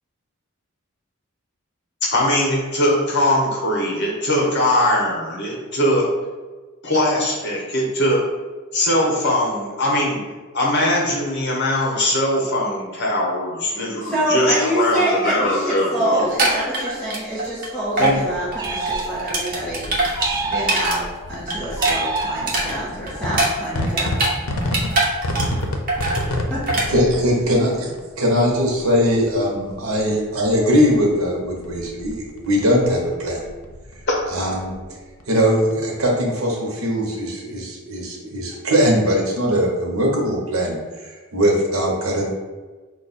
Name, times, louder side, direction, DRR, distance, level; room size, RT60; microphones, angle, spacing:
voice 1, 2.1-6.1 6.8-8.2 8.7-10.2 10.5-16.3 18.0-18.2, left 1 dB, 55° left, -3 dB, 1.0 m, -21 dB
voice 2, 13.7-19.8 20.2-24.1 26.5-26.6, right 1 dB, 5° left, -11 dB, 1.1 m, -26 dB
sound 1, 16.2-17.7 18.0-18.2 18.5-21.0 21.3-24.4 24.6-25.6 25.9-26.2 26.7-26.9, right 2 dB, 45° right, 1.0 m, -22 dB
sound 2, 17.9-36.1, left 1 dB, 85° left, 0.7 m, -32 dB
sound 3, 18.5-19.6 20.1-21.2 21.8-23.0, right 3 dB, 15° right, 0.3 m, -28 dB
voice 3, 26.9-27.9 28.2-33.4 34.3-34.8 35.3-42.3, equal, 90° right, -2 dB, 1.0 m, -20 dB
5.1 x 2.4 x 4.1 m, 1.3 s
head